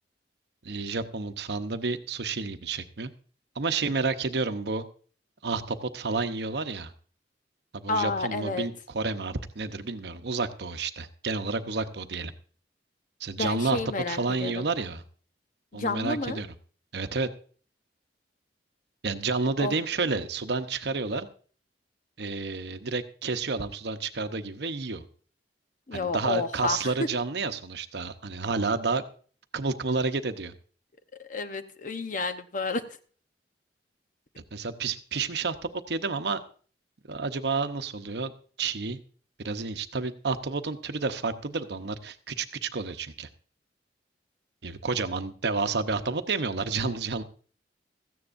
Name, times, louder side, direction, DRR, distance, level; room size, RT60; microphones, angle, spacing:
voice 1, 0.6-3.1 3.6-4.8 5.4-6.9 7.7-12.3 13.2-13.8 14.1-15.0 15.7-16.5 16.9-17.3 19.0-21.3 22.2-25.0 25.9-29.0 29.5-30.5 34.4-36.4 37.1-38.3 38.6-39.0 39.4-43.3 44.6-47.2, right 4 dB, 65° right, 9 dB, 0.9 m, -30 dB
voice 2, 7.9-8.7 13.4-14.7 15.7-16.4 19.6-19.8 25.9-26.9 31.2-32.8, left 3 dB, 50° left, 9 dB, 0.9 m, -30 dB
17.0 x 14.0 x 2.6 m, 0.42 s
head